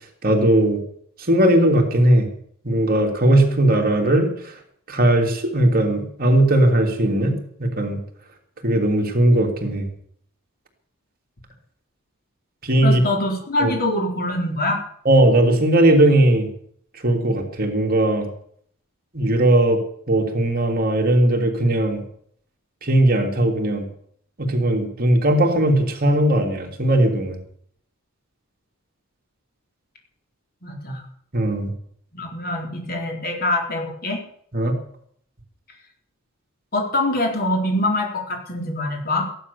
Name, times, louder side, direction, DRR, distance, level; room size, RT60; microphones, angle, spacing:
voice 1, 0.2-0.8 1.3-2.3 2.6-4.3 4.9-7.3 7.6-8.0 8.6-9.9 12.6-13.0 13.6-13.7 15.0-16.5 17.0-18.3 19.1-19.8 20.1-22.0 22.8-23.8 24.4-27.4 31.3-31.7 34.5-34.8, right 1 dB, 45° right, 2 dB, 3.0 m, -18 dB
voice 2, 12.8-14.8 30.6-31.0 32.1-34.2 36.7-39.2, left 1 dB, 45° left, 2 dB, 3.9 m, -24 dB
15.0 x 11.5 x 7.0 m, 0.65 s
head